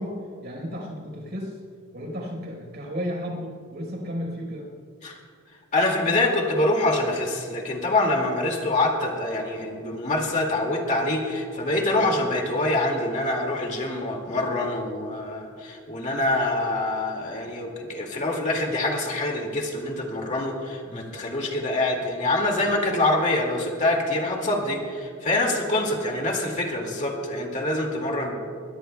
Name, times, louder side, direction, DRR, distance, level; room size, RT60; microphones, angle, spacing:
voice 1, 0.0-1.6 1.9-4.7 11.6-11.9 20.9-21.3, equal, 50° right, 1 dB, 4.2 m, -34 dB
voice 2, 5.7-28.3, left 2 dB, 35° left, 1 dB, 2.1 m, -25 dB
22.5 x 21.5 x 2.3 m, 2.3 s
head